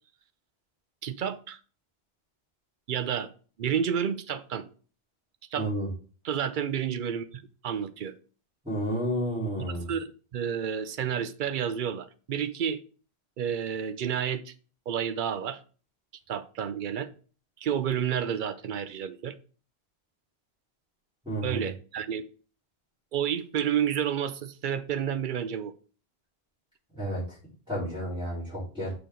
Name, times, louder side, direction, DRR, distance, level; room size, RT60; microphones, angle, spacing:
voice 1, 1.0-1.6 2.9-3.3 3.6-4.7 5.5-5.7 6.2-8.1 9.6-12.8 13.4-14.5 14.9-15.6 16.3-17.1 17.6-19.3 21.4-22.2 23.1-25.7, right 8 dB, 55° right, 0.7 m, -30 dB
voice 2, 5.6-5.9 8.6-9.9 21.3-21.6 27.0-27.2 27.7-28.9, equal, 5° right, 3.7 m, -31 dB
6.7 x 5.0 x 3.7 m
omnidirectional pair, 1.1 m